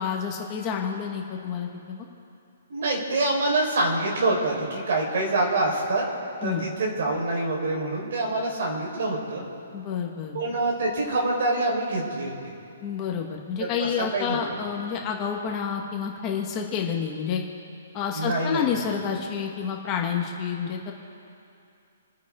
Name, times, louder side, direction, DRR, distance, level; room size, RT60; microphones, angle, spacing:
voice 1, 0.0-2.1 6.4-6.6 9.7-10.3 12.8-17.4 17.9-20.9, left 7 dB, 20° left, 0 dB, 1.5 m, -29 dB
voice 2, 2.7-6.0 6.4-9.4 10.3-12.3 13.6-13.7 14.0-14.4 18.1-18.8, right 2 dB, 55° right, -1 dB, 4.4 m, -26 dB
28.0 x 9.8 x 3.7 m, 2.7 s
hypercardioid pair, 170°, 0 cm